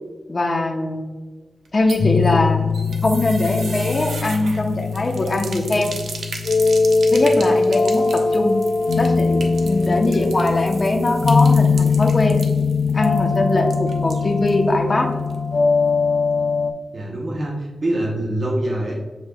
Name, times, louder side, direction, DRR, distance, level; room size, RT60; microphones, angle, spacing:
voice 1, 0.3-1.1 1.7-2.6 3.0-5.9 7.1-8.6 9.0-12.4 12.9-15.1, left 2 dB, 35° left, 2 dB, 0.8 m, -21 dB
sound 1, 1.7-14.6 14.9-15.0 15.3-15.4, right 4 dB, 90° right, 0.6 m, -36 dB
sound 2, 2.0-16.7, left 4 dB, 70° left, 0.4 m, -20 dB
voice 2, 7.1-7.4 16.9-18.9, right 1 dB, 50° right, -3 dB, 0.8 m, -25 dB
7.3 x 3.1 x 2.3 m, 1.3 s
wide cardioid pair, 130°, 0 cm